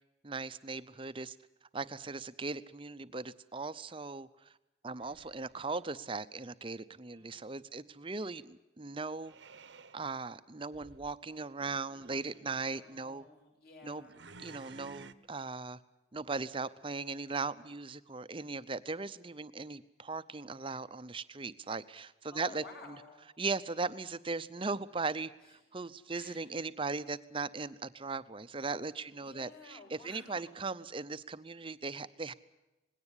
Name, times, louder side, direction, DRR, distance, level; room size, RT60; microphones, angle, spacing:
voice 1, 0.2-1.4 1.7-4.5 4.8-9.4 9.9-13.3 13.8-14.1 14.4-15.8 16.1-22.6 23.4-32.3, right 3 dB, 25° right, 14 dB, 0.7 m, -38 dB
sound 1, 5.0-5.8 9.2-10.0 10.7-11.1 11.8-12.5 14.1-15.1, right 4 dB, 65° right, 1.0 m, -53 dB
voice 2, 7.1-7.7 12.7-14.2 22.3-23.2 25.4-26.4 29.0-30.6, left 4 dB, 50° left, 0 dB, 7.1 m, -54 dB
20.0 x 17.0 x 9.8 m, 1.0 s
head